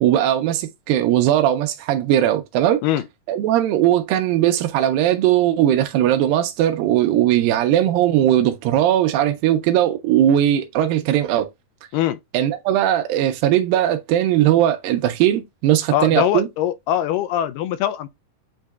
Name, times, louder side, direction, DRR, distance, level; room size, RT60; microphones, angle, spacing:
voice 1, 0.0-2.8 3.3-11.5 12.3-16.5, right 12 dB, 85° right, 2.4 m, -19 dB
voice 2, 15.9-18.1, left 11 dB, 80° left, 2.1 m, -22 dB
7.8 x 2.7 x 2.3 m
omnidirectional pair, 4.0 m